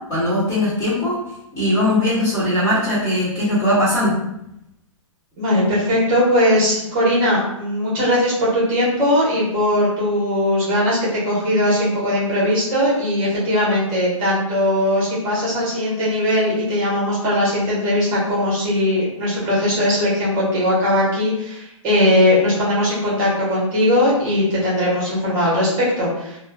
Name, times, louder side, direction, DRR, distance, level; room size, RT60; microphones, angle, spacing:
voice 1, 0.1-1.2 1.5-4.1, left 1 dB, 20° left, -9 dB, 1.3 m, -19 dB
voice 2, 5.4-26.4, left 1 dB, 30° right, -7 dB, 1.3 m, -19 dB
3.0 x 2.3 x 2.3 m, 0.82 s
hypercardioid pair, 140°, 17 cm